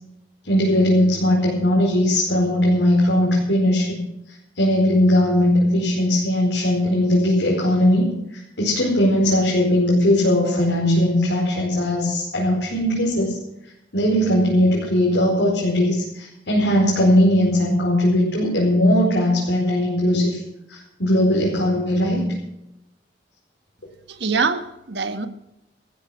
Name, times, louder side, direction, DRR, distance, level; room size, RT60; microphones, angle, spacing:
voice 1, 0.4-4.0 4.5-8.0 8.3-13.4 13.9-20.4 20.7-22.3, left 1 dB, 85° left, -5 dB, 4.8 m, -19 dB
voice 2, 24.1-25.3, right 4 dB, 75° right, 8 dB, 1.4 m, -24 dB
15.0 x 12.0 x 6.1 m, 0.85 s
head